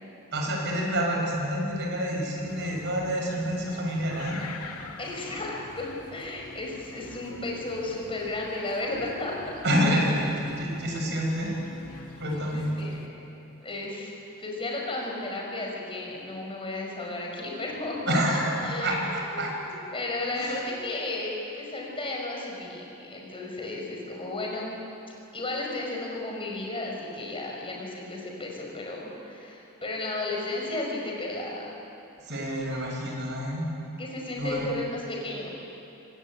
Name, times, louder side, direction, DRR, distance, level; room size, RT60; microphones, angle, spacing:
voice 1, 0.3-4.4 9.6-11.5 12.2-12.6 18.1-19.5 20.3-20.6 32.2-33.7 34.4-34.7, equal, 50° right, -1 dB, 6.8 m, -28 dB
sound 1, 2.4-13.1, left 3 dB, 85° left, 2.2 m, -45 dB
voice 2, 5.0-9.5 12.4-13.0 13.6-24.8 25.3-31.8 34.0-35.5, left 2 dB, 25° left, -1 dB, 5.3 m, -34 dB
25.5 x 19.5 x 8.9 m, 2.9 s
head